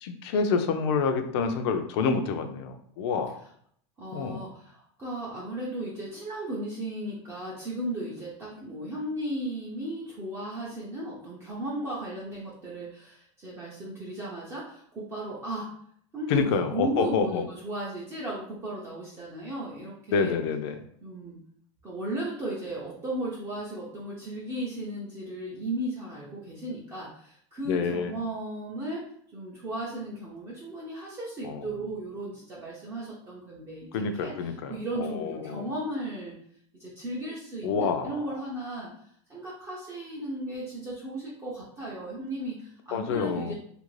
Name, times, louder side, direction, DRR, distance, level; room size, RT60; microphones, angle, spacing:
voice 1, 0.0-3.4 4.1-4.5 16.3-17.4 20.1-20.8 27.7-28.1 31.4-31.6 33.9-35.7 37.6-38.1 42.9-43.5, left 5 dB, 60° left, 7 dB, 0.4 m, -28 dB
voice 2, 4.0-15.7 16.1-20.4 21.0-21.4 21.8-29.1 29.3-36.3 36.7-38.9 39.3-43.5, right 1 dB, 15° right, -6 dB, 0.5 m, -35 dB
2.8 x 2.5 x 3.1 m, 0.65 s
supercardioid pair, 165°, 16 cm